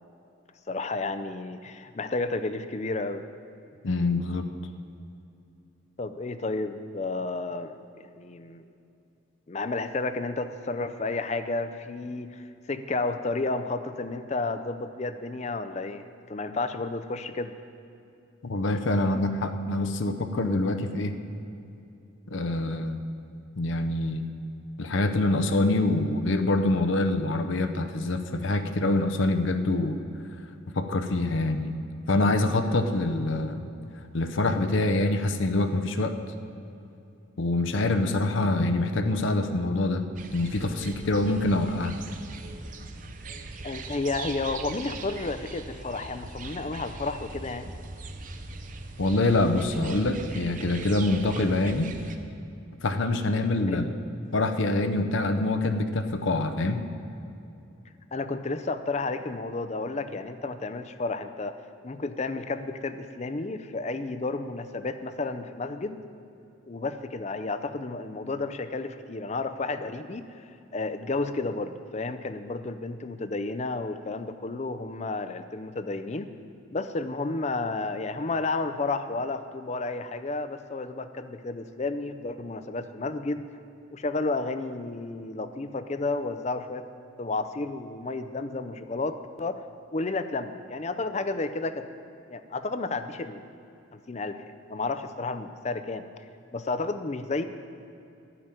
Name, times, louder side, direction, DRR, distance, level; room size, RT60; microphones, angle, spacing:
voice 1, 0.7-3.2 6.0-7.8 8.2-8.7 9.5-17.6 19.1-19.2 43.6-47.7 53.7-53.9 58.1-61.6 61.8-66.0 66.7-70.3 70.7-76.3 76.7-83.5 83.9-86.9 87.2-89.6 89.9-91.9 92.3-93.4 93.9-96.0 96.5-97.4, left 3 dB, 35° left, 10 dB, 0.5 m, -32 dB
voice 2, 3.8-4.5 18.4-21.1 22.3-23.0 23.6-24.2 24.8-30.0 30.8-31.7 32.1-33.7 34.1-36.2 37.4-40.0 40.3-41.9 49.0-51.9 52.8-53.9 54.3-56.8, left 2 dB, 70° left, 8 dB, 0.7 m, -25 dB
sound 1, 40.2-52.2, right 3 dB, 40° right, 0.6 m, -40 dB
12.0 x 5.8 x 9.0 m, 2.7 s
head